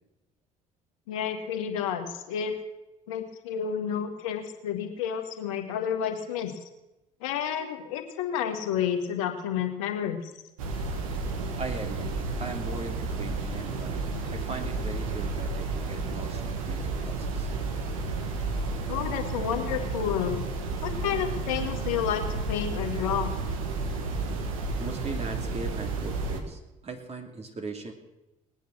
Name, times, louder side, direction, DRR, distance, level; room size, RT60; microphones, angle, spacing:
voice 1, 1.1-2.6 3.1-6.5 7.2-10.3 18.9-20.4 20.8-23.4, left 8 dB, 80° left, 5 dB, 1.8 m, -30 dB
sound 1, 10.6-26.4, right 3 dB, 85° right, 1.6 m, -32 dB
voice 2, 11.6-17.5 24.8-27.9, right 3 dB, 40° right, 4 dB, 2.9 m, -39 dB
19.5 x 9.2 x 6.4 m, 0.98 s
hypercardioid pair, 55°, 17 cm